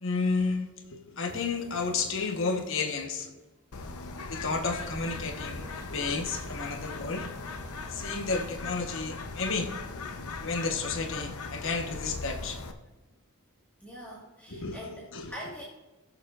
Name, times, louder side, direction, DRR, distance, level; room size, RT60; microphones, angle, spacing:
voice 1, 0.0-3.3 4.3-7.3 7.9-9.7 10.4-12.6 14.5-15.3, left 4 dB, 60° left, 4 dB, 1.2 m, -32 dB
sound 1, 1.2-3.5 4.5-8.6, equal, 10° right, 3.0 m, -53 dB
Bird, 3.7-12.7, left 3 dB, 80° left, 0.8 m, -39 dB
voice 2, 13.8-15.6, equal, 5° left, -6 dB, 1.5 m, -43 dB
18.5 x 6.9 x 2.5 m, 1.1 s
head